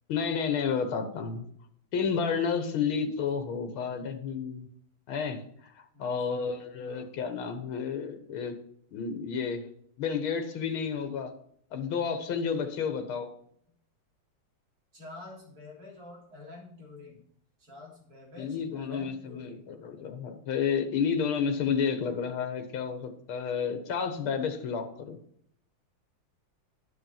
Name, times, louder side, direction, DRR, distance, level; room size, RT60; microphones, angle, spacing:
voice 1, 0.1-1.4 1.9-4.7 5.1-5.4 6.0-8.5 8.9-9.6 10.0-11.3 11.7-13.3 18.4-25.2, left 6 dB, 85° left, 7 dB, 2.1 m, -31 dB
voice 2, 5.9-6.5 6.8-7.1 12.8-13.1 14.9-17.2 17.6-19.7, left 2 dB, 45° right, -3 dB, 3.9 m, -48 dB
10.0 x 7.0 x 5.7 m, 0.66 s
omnidirectional pair, 2.2 m